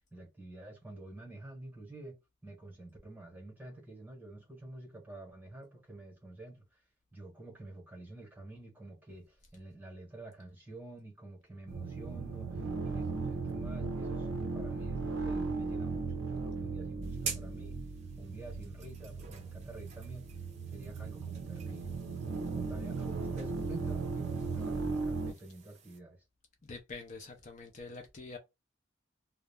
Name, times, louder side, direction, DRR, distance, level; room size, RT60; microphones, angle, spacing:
voice 1, 0.1-6.8 7.1-17.8 18.2-20.3 20.7-22.0 22.5-26.2, right 2 dB, 10° right, 0.9 m, -49 dB
sound 1, 11.7-25.3, right 4 dB, 80° right, 0.5 m, -37 dB
sound 2, 17.0-26.0, right 6 dB, 35° right, 0.5 m, -48 dB
voice 2, 26.6-28.4, left 3 dB, 35° left, 0.5 m, -46 dB
2.3 x 2.0 x 3.3 m
head